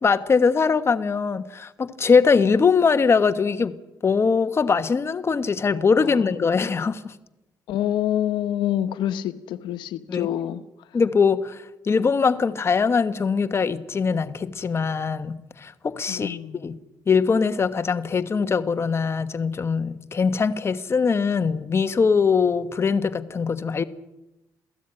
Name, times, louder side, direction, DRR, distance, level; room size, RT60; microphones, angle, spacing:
voice 1, 0.0-3.8 4.0-7.1 10.1-10.3 10.9-16.8 17.1-23.8, left 5 dB, 35° left, 11 dB, 1.3 m, -22 dB
voice 2, 7.7-10.6 16.1-16.6, left 11 dB, 90° left, 12 dB, 1.1 m, -27 dB
28.0 x 17.0 x 8.9 m, 0.97 s
cardioid pair, 105°, 8 cm